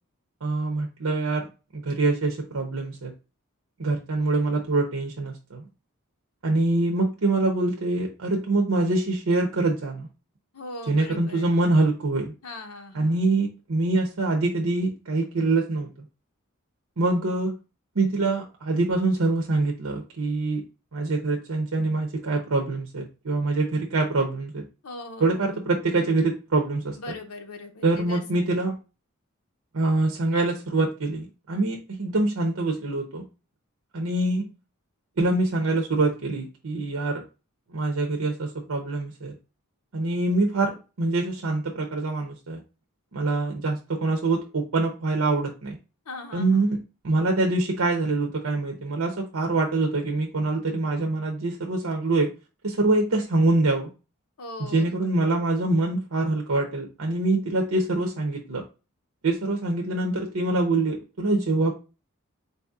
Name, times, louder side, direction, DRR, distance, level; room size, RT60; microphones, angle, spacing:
voice 1, 0.4-3.1 3.8-5.7 6.4-10.1 10.9-12.3 12.9-15.9 17.0-17.5 18.0-20.6 20.9-24.6 25.2-27.0 27.8-28.7 29.7-33.2 33.9-34.5 35.2-37.2 37.7-39.3 39.9-42.6 43.1-45.8 46.3-46.8 47.0-52.3 52.6-53.9 54.7-58.6 59.2-61.7, right 2 dB, 75° right, 2 dB, 0.8 m, -25 dB
voice 2, 10.5-11.6 12.4-13.3 24.8-25.6 27.0-28.5 46.0-46.7 54.4-54.9, left 2 dB, 85° left, 4 dB, 0.8 m, -40 dB
4.3 x 2.8 x 3.5 m, 0.31 s
head